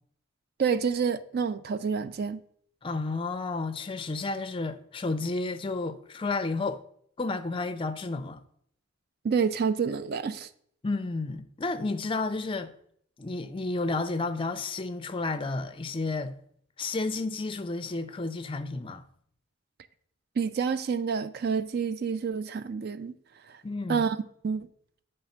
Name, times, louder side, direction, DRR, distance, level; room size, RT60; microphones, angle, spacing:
voice 1, 0.6-2.4 9.2-10.5 20.4-23.1 23.9-24.2 24.4-24.7, right 6 dB, 50° right, 0.3 m, -28 dB
voice 2, 2.8-6.8 7.2-8.4 10.8-12.7 13.2-16.4 16.8-19.0 23.6-24.0, left 3 dB, 25° left, 0.4 m, -31 dB
8.8 x 3.3 x 5.7 m
head